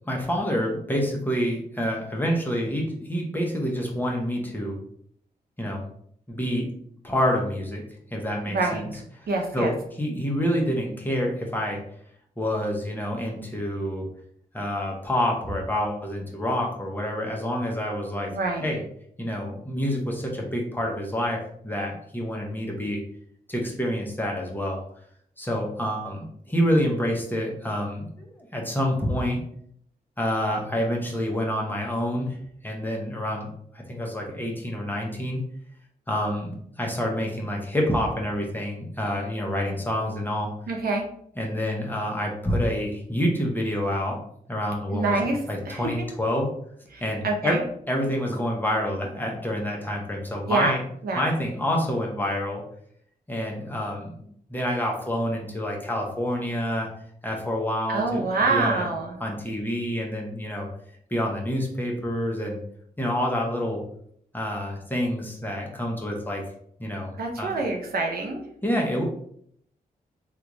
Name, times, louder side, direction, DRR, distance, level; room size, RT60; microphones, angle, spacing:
voice 1, 0.1-4.8 5.6-5.8 6.3-6.7 7.0-7.8 8.1-8.9 9.2-11.8 12.4-14.1 14.5-18.3 18.6-18.8 19.2-23.0 23.5-24.8 25.4-29.4 30.2-32.4 32.6-35.4 36.1-40.5 41.4-44.2 44.5-45.2 45.5-46.5 47.0-47.6 47.9-50.8 51.2-52.6 53.3-54.1 54.5-56.9 57.2-58.9 59.2-60.7 61.1-62.6 63.0-63.8 64.3-66.4 66.8-67.5 68.6-69.0, equal, 10° left, -1 dB, 0.9 m, -27 dB
voice 2, 9.3-9.7 18.3-18.6 40.7-41.1 44.9-45.4 45.7-46.1 46.9-47.6 50.5-50.8 51.0-51.2 57.9-59.1 67.2-68.4, right 3 dB, 75° right, 1 dB, 0.7 m, -26 dB
3.3 x 2.5 x 3.0 m, 0.66 s
cardioid pair, 70°, 16 cm